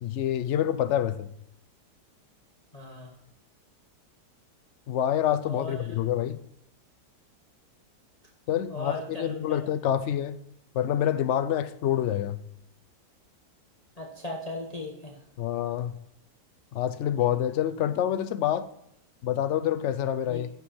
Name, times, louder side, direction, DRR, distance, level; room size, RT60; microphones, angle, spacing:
voice 1, 0.0-1.3 4.9-6.4 8.5-10.4 10.7-12.4 15.4-15.9 16.7-18.7 19.2-20.5, left 10 dB, 80° left, 0.6 m, -27 dB
voice 2, 2.7-3.1 5.5-5.8 8.7-9.6 14.0-15.2 20.3-20.4, left 2 dB, 25° left, 1.3 m, -37 dB
11.5 x 7.8 x 4.3 m
omnidirectional pair, 1.9 m